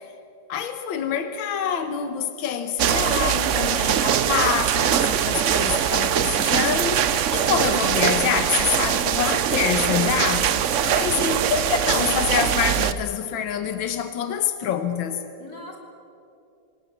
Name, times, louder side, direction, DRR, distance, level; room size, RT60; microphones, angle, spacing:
voice 1, 0.5-10.5 10.8-15.2, left 8 dB, 75° left, 1.9 m, -26 dB
sound 1, 2.8-12.9, right 9 dB, 75° right, 0.6 m, -22 dB
voice 2, 10.7-11.3 15.4-15.8, left 2 dB, 50° left, 4.0 m, -41 dB
27.0 x 18.5 x 7.2 m
omnidirectional pair, 2.2 m